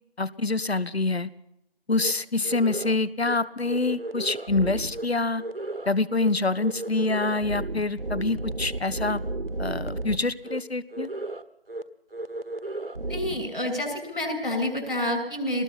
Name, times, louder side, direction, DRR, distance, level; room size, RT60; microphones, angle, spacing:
voice 1, 0.2-1.3 1.9-5.4 5.9-9.2 9.6-11.1, left 3 dB, 70° left, 18 dB, 1.2 m, -26 dB
sound 1, 2.0-2.1 2.4-2.9 3.2-3.4 3.6-5.1 5.4-5.9 6.1-6.3 6.6-10.2 10.4-10.6 10.9-11.4 11.7-11.8 12.1-13.4, right 2 dB, 60° right, 1.5 m, -33 dB
voice 2, 13.1-15.6, left 1 dB, 50° left, 4 dB, 6.7 m, -28 dB
24.0 x 20.0 x 5.7 m, 0.80 s
figure-of-eight pair, 175°, 32 cm